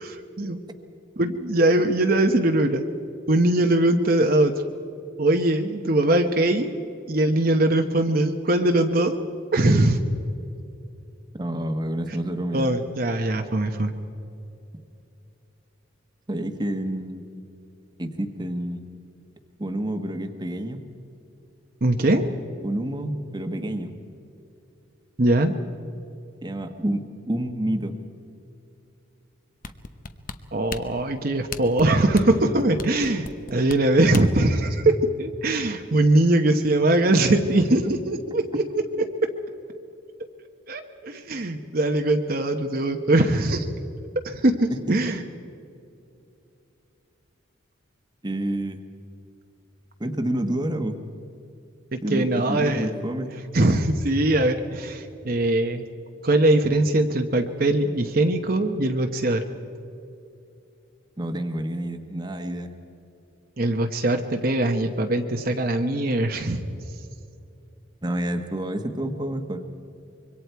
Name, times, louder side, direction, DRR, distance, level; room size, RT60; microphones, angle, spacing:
voice 1, 0.0-0.6 1.2-2.8 3.3-4.5 5.2-6.7 7.1-9.1 9.5-10.0 12.5-13.9 21.8-22.3 25.2-25.5 30.5-38.7 39.0-39.3 40.7-43.7 44.2-45.2 51.9-52.9 53.5-55.8 56.2-59.4 63.6-66.6, right 1 dB, 45° right, 4 dB, 1.0 m, -21 dB
voice 2, 11.4-12.7 16.3-17.2 18.0-18.8 19.6-20.8 22.6-23.9 26.4-28.0 45.1-45.2 48.2-48.8 50.0-51.0 52.0-53.3 61.2-62.7 68.0-69.6, right 1 dB, 20° right, 6 dB, 1.2 m, -28 dB
sound 1, 29.6-34.5 34.9-35.0, left 4 dB, 45° left, 0.9 m, -36 dB
25.5 x 23.5 x 4.6 m, 2.7 s
head